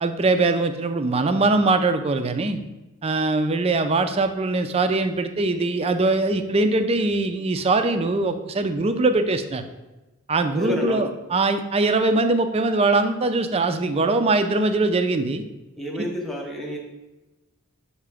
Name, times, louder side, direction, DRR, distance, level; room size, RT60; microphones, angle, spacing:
voice 1, 0.0-2.6 3.0-9.6 10.3-15.4, right 3 dB, 30° right, 8 dB, 0.4 m, -22 dB
voice 2, 10.5-11.1 15.8-16.8, left 1 dB, ahead, -1 dB, 1.0 m, -29 dB
6.6 x 2.9 x 4.9 m, 1.0 s
head